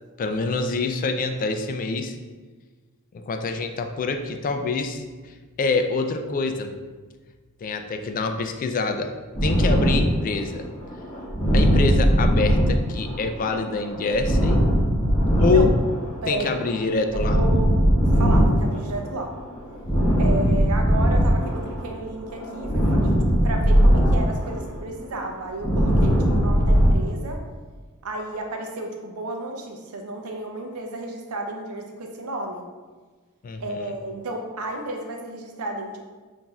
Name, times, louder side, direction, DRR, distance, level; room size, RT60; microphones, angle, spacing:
voice 1, 0.2-2.2 3.1-6.7 7.6-9.1 9.4-10.7 11.5-14.6 15.4-15.7 16.3-17.4 33.4-33.9, left 4 dB, 40° left, 6 dB, 0.3 m, -26 dB
sound 1, 9.3-22.0 22.2-26.9, equal, 20° left, 0.8 m, -20 dB
voice 2, 16.2-16.6 17.1-17.7 18.2-19.3 20.2-23.2 23.4-27.4 28.0-32.6 33.6-36.0, right 2 dB, 70° right, 3 dB, 0.6 m, -32 dB
5.8 x 2.6 x 2.3 m, 1.4 s
head